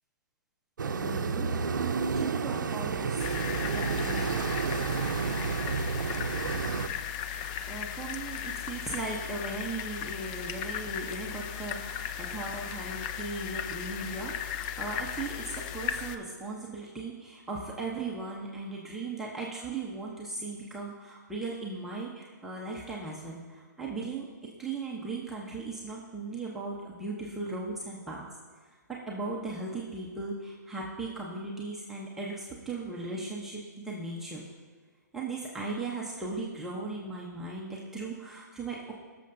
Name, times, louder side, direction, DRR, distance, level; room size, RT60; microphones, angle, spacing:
sound 1, 0.8-6.9, right 5 dB, 85° right, 0.6 m, -30 dB
voice 1, 1.0-1.5 2.1-3.2 3.6-4.5 7.7-24.2 24.6-28.2 28.9-34.4 35.1-38.9, right 3 dB, 5° right, -5 dB, 0.8 m, -37 dB
sound 2, 3.2-16.2, left 9 dB, 25° left, 0.3 m, -37 dB
19.5 x 6.7 x 2.6 m, 1.5 s
hypercardioid pair, 150°, 10 cm